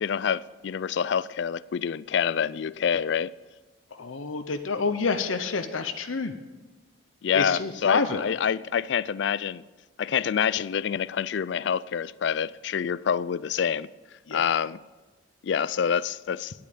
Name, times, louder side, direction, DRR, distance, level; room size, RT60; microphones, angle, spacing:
voice 1, 0.0-3.3 7.2-9.6 10.0-13.9 14.3-14.8 15.4-16.5, left 7 dB, 60° left, 0.3 m, -27 dB
voice 2, 3.9-6.4 7.3-8.2 14.3-14.4, left 4 dB, 90° left, 0.8 m, -28 dB
9.8 x 8.4 x 8.9 m
head